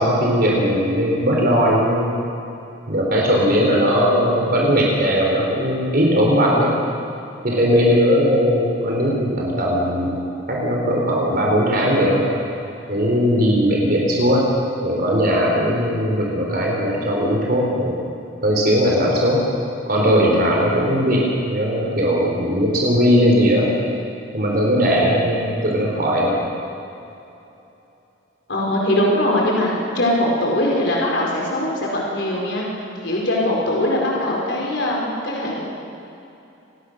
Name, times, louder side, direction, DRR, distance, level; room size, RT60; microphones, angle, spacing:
voice 1, 0.0-2.1 2.9-6.8 7.4-12.3 12.9-14.5 14.8-18.0 18.4-19.4 19.9-23.7 24.3-26.4, equal, 50° right, -2 dB, 4.0 m, -18 dB
voice 2, 3.8-4.2 28.5-32.6 33.0-35.6, left 1 dB, 60° left, -3 dB, 4.8 m, -21 dB
28.0 x 19.0 x 6.6 m, 2.9 s
head